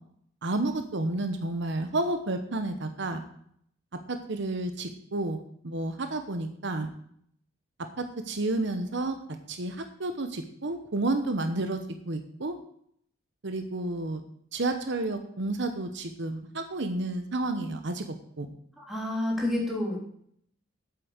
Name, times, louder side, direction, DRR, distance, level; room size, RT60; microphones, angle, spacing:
voice 1, 0.4-3.2 4.1-6.9 8.0-9.2 9.5-11.8 12.1-12.6 13.4-14.2 14.5-18.5, right 2 dB, 65° right, 7 dB, 1.0 m, -31 dB
voice 2, 18.8-20.0, left 1 dB, ahead, -3 dB, 3.3 m, -29 dB
8.6 x 8.1 x 8.0 m, 0.67 s
head